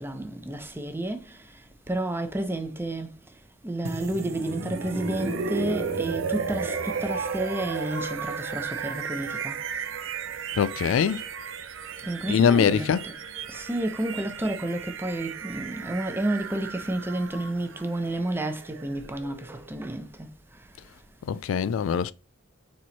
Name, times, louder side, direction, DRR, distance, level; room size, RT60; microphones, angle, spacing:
voice 1, 0.0-1.3 1.9-3.1 3.6-9.6 12.0-13.2 13.5-20.3, right 1 dB, 10° right, 0.7 m, -31 dB
sound 1, 3.8-19.7, right 5 dB, 90° right, 0.6 m, -34 dB
voice 2, 10.6-11.2 12.3-13.0 21.3-22.1, left 7 dB, 85° left, 0.3 m, -22 dB
4.2 x 3.1 x 4.0 m
head